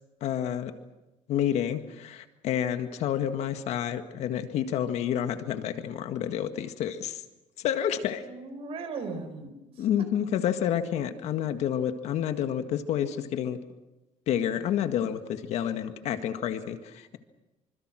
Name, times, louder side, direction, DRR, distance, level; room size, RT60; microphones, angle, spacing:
voice 1, 0.2-0.7 1.3-7.2 7.6-8.2 9.8-13.6 14.3-17.2, left 9 dB, 55° left, 8 dB, 1.8 m, -29 dB
voice 2, 8.2-10.1, right 4 dB, 45° right, 8 dB, 4.9 m, -38 dB
26.5 x 26.0 x 6.4 m, 0.99 s
cardioid pair, 155°, 13 cm